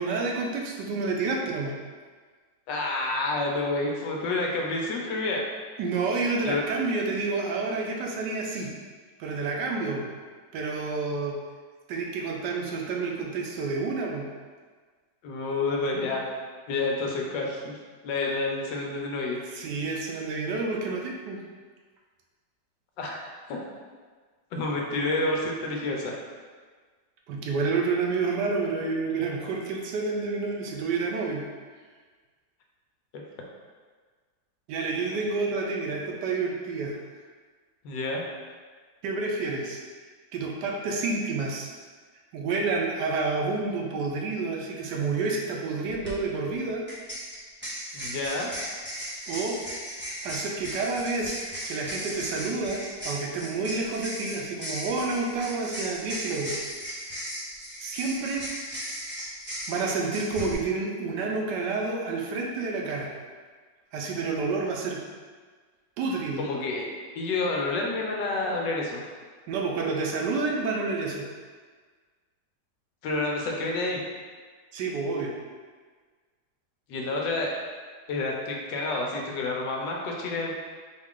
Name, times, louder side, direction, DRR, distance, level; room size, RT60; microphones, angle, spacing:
voice 1, 0.0-1.7 5.8-8.7 9.2-10.1 10.5-11.4 11.9-14.2 19.5-21.4 27.3-31.4 34.7-37.0 39.0-39.8 40.3-41.7 42.3-46.8 49.3-49.6 50.0-51.4 51.7-56.8 57.8-58.4 59.7-63.1 63.9-65.0 66.0-66.4 69.5-71.3 74.7-75.3, right 3 dB, 75° right, 0 dB, 1.2 m, -29 dB
voice 2, 2.7-5.4 6.4-6.6 15.2-16.2 16.7-17.7 18.0-19.4 23.0-23.2 23.5-23.6 24.5-26.1 37.8-38.2 47.9-48.5 66.4-66.8 67.2-69.0 73.0-74.0 76.9-77.5 78.1-80.5, left 2 dB, 80° left, 0 dB, 1.3 m, -29 dB
sound 1, 45.9-46.1 46.9-60.5, equal, 15° right, 0.4 m, -37 dB
4.6 x 2.4 x 3.6 m, 1.5 s
omnidirectional pair, 1.9 m